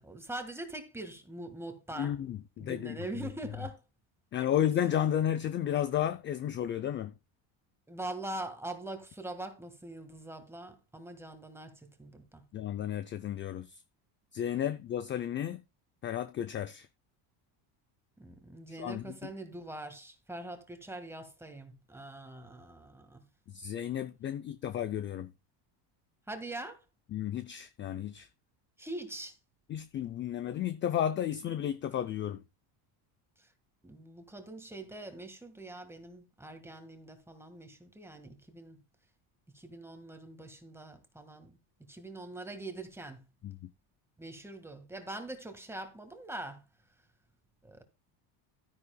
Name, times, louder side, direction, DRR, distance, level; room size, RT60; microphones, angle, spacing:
voice 1, 0.0-2.1 2.6-3.8 7.9-12.4 18.2-23.2 26.3-26.8 28.8-29.4 33.4-33.5 33.8-38.8 39.5-43.3 44.2-46.6 47.6-47.8, right 2 dB, 5° right, 1.6 m, -43 dB
voice 2, 2.0-3.0 4.3-7.1 12.5-13.8 14.3-15.6 16.0-16.9 18.7-19.3 23.5-25.3 27.1-28.3 29.7-32.4 43.4-43.7, left 10 dB, 25° left, 0.4 m, -33 dB
12.5 x 9.9 x 2.2 m
cardioid pair, 150°, 48 cm